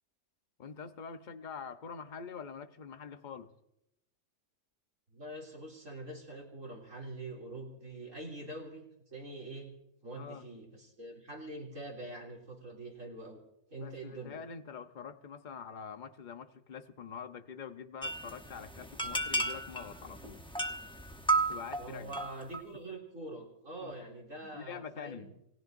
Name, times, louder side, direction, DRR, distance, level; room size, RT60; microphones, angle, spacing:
voice 1, 0.6-3.5 10.1-10.4 13.8-20.4 21.5-22.2 23.8-23.9 24.5-25.3, left 6 dB, 40° left, 8 dB, 0.8 m, -45 dB
voice 2, 5.1-9.7 10.0-13.4 13.7-14.4 21.8-25.3, right 2 dB, 55° right, -1 dB, 3.4 m, -44 dB
sound 1, 18.0-22.6, right 3 dB, 5° left, 0.7 m, -34 dB
28.5 x 19.0 x 2.6 m, 0.82 s
omnidirectional pair, 1.6 m